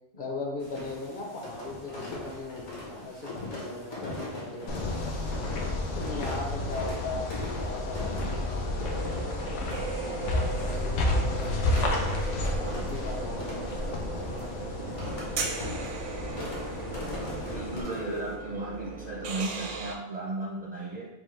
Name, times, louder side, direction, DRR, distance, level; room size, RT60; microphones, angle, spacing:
voice 1, 0.1-5.5 5.9-9.4 10.0-12.0 12.4-15.5, left 2 dB, 45° left, -2 dB, 0.8 m, -39 dB
sound 1, 0.6-18.3, left 2 dB, 70° left, 1.5 m, -41 dB
sound 2, 4.7-17.8, left 2 dB, 85° left, 1.1 m, -31 dB
sound 3, 8.8-19.9, right 5 dB, 80° right, 0.9 m, -37 dB
voice 2, 17.5-21.1, right 2 dB, 50° right, -3 dB, 0.5 m, -35 dB
6.1 x 2.1 x 3.1 m, 0.94 s
omnidirectional pair, 1.3 m